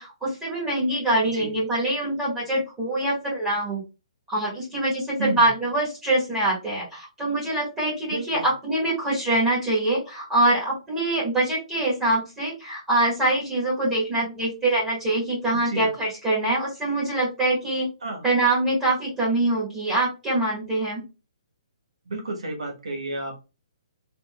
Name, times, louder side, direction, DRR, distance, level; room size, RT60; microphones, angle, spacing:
voice 1, 0.0-3.8 4.3-17.9 18.2-21.0, right 2 dB, 15° right, -7 dB, 1.6 m, -24 dB
voice 2, 8.1-8.5 15.7-15.9 18.0-18.3 22.0-23.3, right 2 dB, 85° right, 1 dB, 1.3 m, -31 dB
3.6 x 2.6 x 2.3 m, 0.29 s
hypercardioid pair, 150°, 3 cm